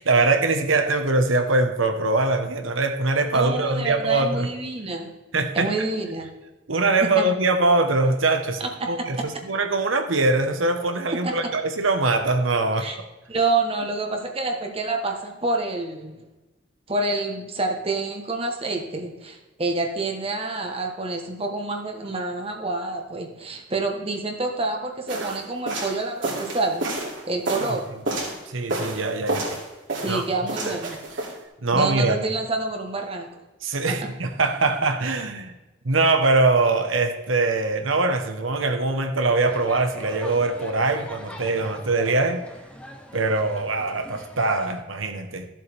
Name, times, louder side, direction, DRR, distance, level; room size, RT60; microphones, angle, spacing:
voice 1, 0.0-4.5 5.3-5.7 6.7-8.6 8.9-12.9 28.5-29.5 30.1-30.2 30.7-30.8 31.6-32.2 33.6-35.5 35.8-42.4 43.1-45.5, right 3 dB, 90° right, 6 dB, 1.2 m, -22 dB
voice 2, 3.3-5.1 5.5-6.3 7.0-7.2 8.6-9.3 11.2-11.4 12.8-13.0 13.3-16.2 16.9-26.9 27.2-27.9 30.0-31.0 31.7-33.4 33.9-34.1, right 2 dB, 30° right, 3 dB, 1.2 m, -27 dB
sound 1, 25.1-28.4 28.7-29.6 29.9-31.4, right 2 dB, 65° right, 3.0 m, -29 dB
sound 2, 39.5-44.8, equal, 5° left, 1.0 m, -42 dB
13.5 x 7.6 x 3.5 m, 1.1 s
head